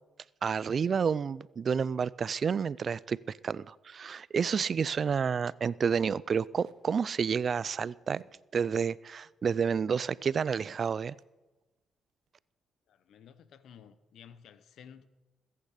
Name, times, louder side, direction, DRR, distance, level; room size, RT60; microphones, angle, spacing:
voice 1, 0.4-3.2 3.4-8.2 8.5-11.1, right 6 dB, 50° right, 0.3 m, -30 dB
Packing tape duct tape, 2.8-3.0 3.4-3.5 3.7-3.9 4.3-4.4 4.7-4.9 5.2-5.4 6.4-6.8 7.8-8.3 9.2-9.6 11.1-11.3 11.7-11.8 12.1-12.5, right 9 dB, 75° right, 1.3 m, -59 dB
voice 2, 12.9-15.1, left 8 dB, 75° left, 0.9 m, -53 dB
21.0 x 8.8 x 5.0 m
cardioid pair, 80°, 0 cm